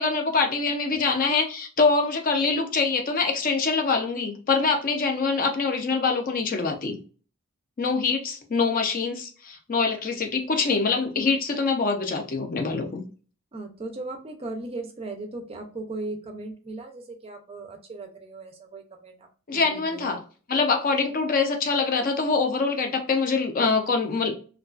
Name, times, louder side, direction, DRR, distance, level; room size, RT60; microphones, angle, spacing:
voice 1, 0.0-7.0 7.8-13.0 19.5-20.2 20.5-24.3, left 4 dB, 40° left, 4 dB, 0.5 m, -24 dB
voice 2, 13.5-19.3 19.6-20.1, right 2 dB, 30° right, 3 dB, 0.4 m, -37 dB
2.4 x 2.3 x 2.3 m, 0.38 s
head